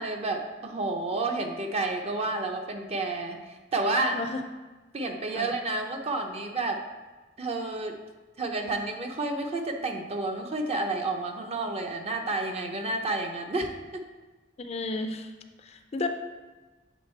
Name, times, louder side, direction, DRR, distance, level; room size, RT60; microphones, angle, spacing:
voice 1, 0.0-3.4 3.7-4.2 4.9-6.8 7.4-8.0 8.4-14.0, right 2 dB, 35° right, 3 dB, 0.7 m, -30 dB
voice 2, 4.1-4.4 5.3-5.5 14.6-15.3 15.6-16.1, left 3 dB, 35° left, 6 dB, 0.4 m, -32 dB
7.3 x 3.5 x 4.4 m, 1.2 s
head